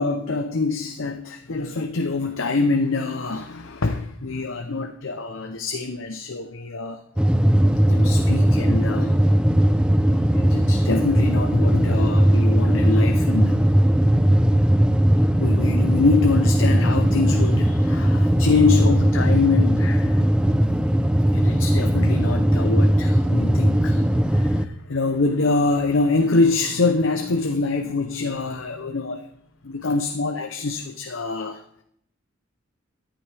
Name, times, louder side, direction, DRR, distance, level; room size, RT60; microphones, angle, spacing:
voice 1, 0.0-7.0 7.9-9.1 10.3-13.6 15.4-20.3 21.3-29.3 29.6-31.6, left 3 dB, 80° left, 0.8 m, -25 dB
sound 1, 7.2-24.6, equal, 5° right, 0.5 m, -18 dB
13.5 x 10.5 x 3.5 m
head